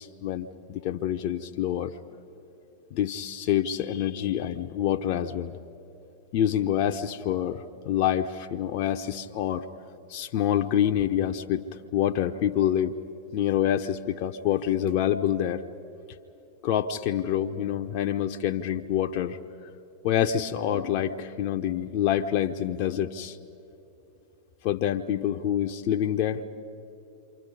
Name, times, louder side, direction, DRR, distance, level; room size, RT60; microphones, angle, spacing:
voice 1, 0.0-2.0 2.9-5.5 6.3-9.7 10.1-11.6 11.9-12.9 13.3-15.7 16.6-19.4 20.0-23.4 24.6-26.4, left 10 dB, 45° left, 5 dB, 0.7 m, -26 dB
29.0 x 25.5 x 5.4 m, 3.0 s
figure-of-eight pair, 90°, 0 cm